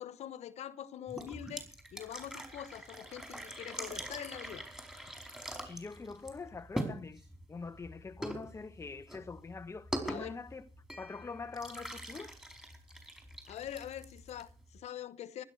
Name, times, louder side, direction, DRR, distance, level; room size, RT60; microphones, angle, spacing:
voice 1, 0.0-4.7 10.0-10.4 13.5-15.4, left 10 dB, 60° left, 1.0 m, -44 dB
sound 1, 1.1-14.8, right 1 dB, 5° right, 4.7 m, -44 dB
voice 2, 5.6-7.2 7.5-10.7 11.0-12.3, left 4 dB, 20° left, 1.2 m, -44 dB
16.0 x 12.0 x 6.6 m
supercardioid pair, 90°, 13 cm